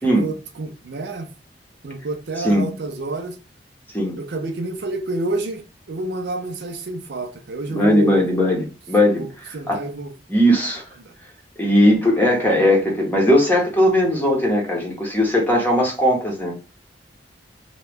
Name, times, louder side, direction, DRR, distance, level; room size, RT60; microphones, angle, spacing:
voice 1, 0.0-1.3 1.8-3.4 4.2-8.3 9.2-10.1 11.0-11.1, right 2 dB, 65° right, 0.5 m, -29 dB
voice 2, 7.7-9.8 10.3-10.8 11.6-16.5, equal, 10° left, 0.8 m, -18 dB
3.0 x 2.2 x 3.3 m
head